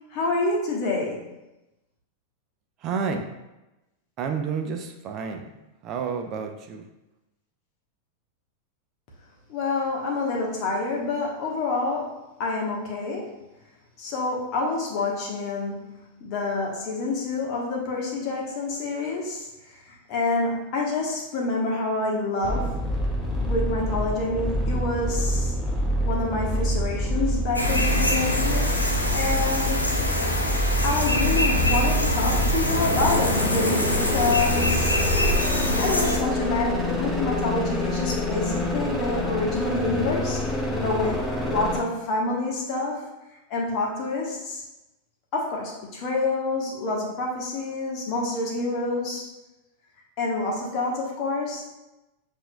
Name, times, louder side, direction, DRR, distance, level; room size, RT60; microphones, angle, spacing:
voice 1, 0.1-1.3 9.5-12.1 12.4-13.3 14.0-22.8 23.3-25.5 26.0-28.7 29.1-29.9 30.3-35.0 35.8-40.4 40.8-43.0 43.5-44.6 45.3-49.2 50.2-51.7, left 3 dB, 40° left, -2 dB, 1.1 m, -27 dB
voice 2, 2.8-3.3 4.2-5.5 5.8-6.8, right 6 dB, 35° right, 4 dB, 0.4 m, -30 dB
sound 1, 22.4-41.8, equal, 5° left, 1.0 m, -27 dB
sound 2, 27.5-36.2, left 1 dB, 85° left, 0.5 m, -25 dB
7.4 x 2.6 x 2.2 m, 0.98 s
figure-of-eight pair, 90°, 0 cm